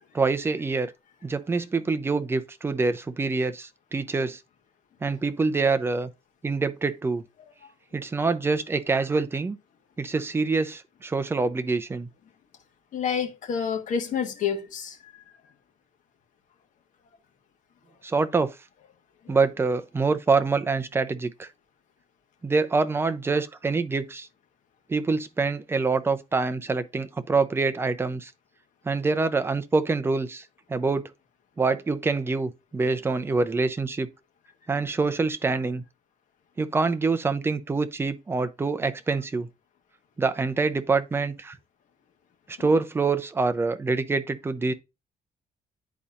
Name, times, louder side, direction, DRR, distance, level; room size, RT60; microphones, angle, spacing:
voice 1, 0.1-0.9 1.2-4.4 5.0-6.1 6.4-7.2 7.9-9.6 10.0-12.1 18.0-18.5 19.3-21.5 22.4-24.3 24.9-28.3 28.9-30.4 30.7-31.1 31.6-34.1 34.7-35.8 36.6-39.5 40.2-41.6 42.5-44.7, right 4 dB, 15° right, 0.5 m, -25 dB
voice 2, 12.9-15.2 19.2-19.4 42.6-42.7, left 7 dB, 65° left, 1.3 m, -29 dB
10.5 x 4.1 x 2.5 m
cardioid pair, 150°, 14 cm